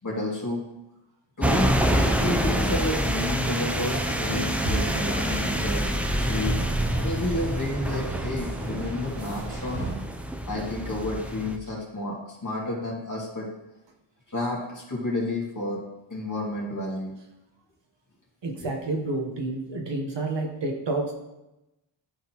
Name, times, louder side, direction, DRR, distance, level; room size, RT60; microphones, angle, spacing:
voice 1, 0.0-0.6 1.4-5.9 6.3-6.6 7.0-10.0 10.5-13.5 14.3-15.8 16.1-17.1 18.6-18.7, left 2 dB, 35° left, -4 dB, 2.3 m, -31 dB
sound 1, 1.4-11.6, right 1 dB, 5° right, 0.4 m, -27 dB
sound 2, 3.7-9.9, right 2 dB, 90° right, 1.4 m, -36 dB
voice 2, 18.4-21.1, right 2 dB, 60° right, 2 dB, 1.2 m, -29 dB
11.5 x 3.9 x 3.0 m, 0.93 s
wide cardioid pair, 105°, 50 cm